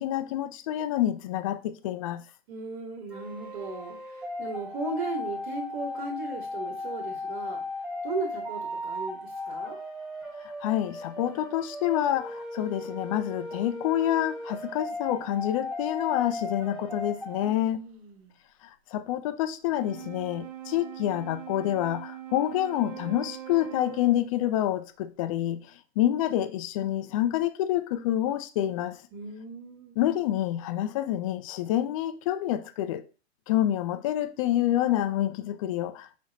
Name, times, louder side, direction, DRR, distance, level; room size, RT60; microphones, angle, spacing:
voice 1, 0.0-2.2 10.6-17.8 18.9-25.6 26.0-29.0 30.0-33.0 33.5-36.2, left 12 dB, 35° left, 0.4 m, -27 dB
voice 2, 2.5-7.6 8.0-9.8 17.4-18.4 29.1-29.9, right 3 dB, 50° right, 1.2 m, -37 dB
sound 1, 3.1-17.5, left 2 dB, 5° right, 0.9 m, -37 dB
Wind instrument woodwind instrument, 19.6-24.4, right 12 dB, 35° right, 0.5 m, -42 dB
5.1 x 2.1 x 3.9 m
hypercardioid pair, 135°, 32 cm